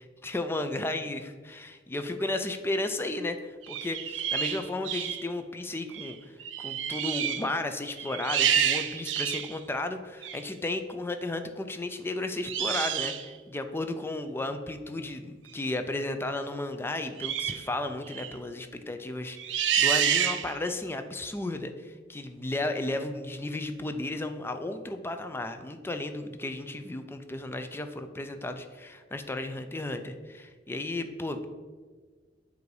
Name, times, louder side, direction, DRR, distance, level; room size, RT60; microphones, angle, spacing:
voice 1, 0.2-6.2 6.6-31.4, left 2 dB, 15° left, 7 dB, 0.4 m, -34 dB
sound 1, 3.6-5.2 5.9-6.1 6.4-7.5 7.9-9.5 10.2-10.4 12.4-13.3 17.2-17.7 18.1-18.4 19.4-20.7, right 9 dB, 90° right, 0.5 m, -28 dB
7.7 x 2.6 x 4.7 m, 1.4 s
head